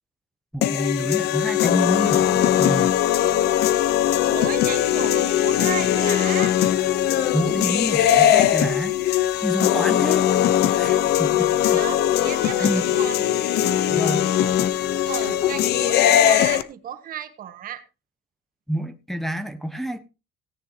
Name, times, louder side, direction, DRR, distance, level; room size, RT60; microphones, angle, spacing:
voice 1, 0.5-2.9 7.3-9.0 9.4-10.3 10.7-11.8 12.6-12.9 13.9-14.3 18.7-20.0, equal, ahead, 1.1 m, -28 dB
sound 1, 0.6-16.6, left 11 dB, 75° left, 0.9 m, -20 dB
voice 2, 4.3-6.6 11.6-13.2 15.1-17.8, right 10 dB, 55° right, 1.6 m, -34 dB
17.5 x 9.8 x 2.9 m
cardioid pair, 110°, 17 cm